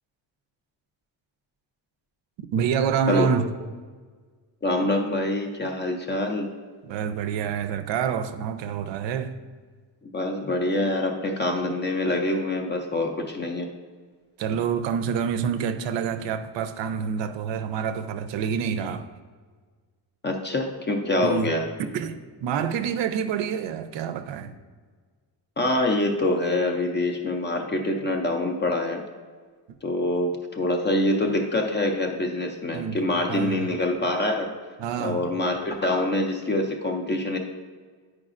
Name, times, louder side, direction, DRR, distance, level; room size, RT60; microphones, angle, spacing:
voice 1, 2.5-3.5 6.8-9.3 14.4-19.1 21.2-21.5 21.9-24.5 32.7-33.0 33.3-33.6 34.8-35.3, right 7 dB, 70° right, 0.5 m, -27 dB
voice 2, 4.6-6.5 10.0-13.7 20.2-21.6 25.6-29.0 29.8-34.5 35.0-37.4, left 1 dB, 25° left, 0.3 m, -25 dB
9.6 x 4.8 x 2.4 m
cardioid pair, 170°, 45 cm